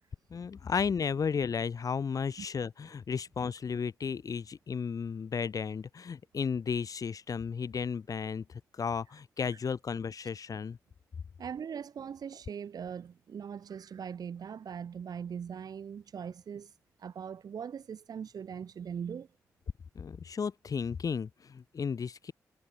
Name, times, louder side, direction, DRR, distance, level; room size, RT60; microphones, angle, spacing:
voice 1, 0.3-10.8 20.0-22.3, left 6 dB, 55° left, 5.6 m, -34 dB
voice 2, 11.4-16.7 17.0-19.3, right 7 dB, 65° right, 4.9 m, -40 dB
supercardioid pair, 55°, 7 cm